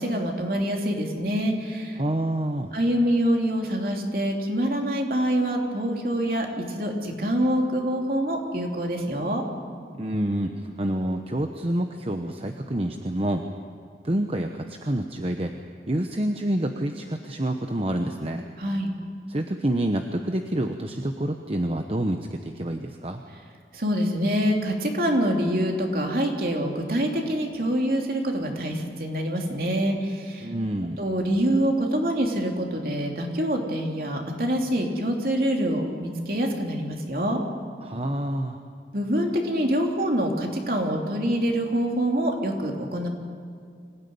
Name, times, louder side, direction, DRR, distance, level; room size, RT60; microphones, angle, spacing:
voice 1, 0.0-2.0 2.7-9.4 18.6-18.9 23.7-30.5 31.0-37.4 38.9-43.1, equal, 55° right, 1 dB, 3.2 m, -25 dB
voice 2, 2.0-2.7 9.9-13.4 14.0-15.5 15.9-18.4 19.3-23.2 30.4-31.0 37.8-38.6, right 1 dB, 35° right, 5 dB, 1.0 m, -27 dB
25.5 x 17.0 x 9.6 m, 2.2 s
head